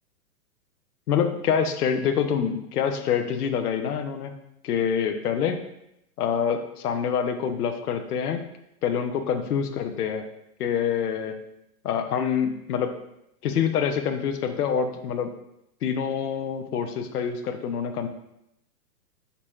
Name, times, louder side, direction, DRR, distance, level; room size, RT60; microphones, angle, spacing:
voice 1, 1.1-4.3 4.6-5.6 6.2-8.4 8.8-10.2 10.6-11.4 11.8-12.9 13.4-15.3 15.8-18.1, left 7 dB, 75° left, 7 dB, 0.7 m, -26 dB
4.4 x 3.9 x 2.3 m, 0.82 s
hypercardioid pair, 125°, 46 cm